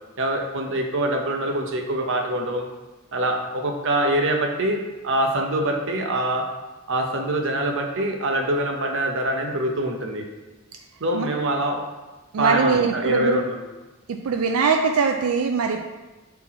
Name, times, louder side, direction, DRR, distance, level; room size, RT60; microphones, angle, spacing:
voice 1, 0.2-2.7 3.1-6.5 6.9-10.2 11.0-11.8 12.4-13.7, right 1 dB, 65° right, 2 dB, 0.9 m, -24 dB
voice 2, 12.3-13.4 14.2-15.8, right 5 dB, 85° right, 4 dB, 0.4 m, -21 dB
5.9 x 4.4 x 4.2 m, 1.1 s
head